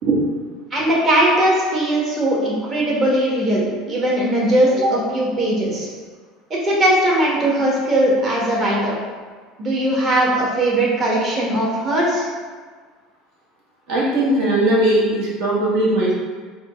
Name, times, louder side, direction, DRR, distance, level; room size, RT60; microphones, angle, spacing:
voice 1, 0.7-5.9 6.6-8.9 9.6-12.3, right 1 dB, 35° right, -4 dB, 1.1 m, -19 dB
voice 2, 13.9-16.1, right 1 dB, 65° right, -6 dB, 1.2 m, -18 dB
3.7 x 2.3 x 3.5 m, 1.5 s
supercardioid pair, 110°, 0 cm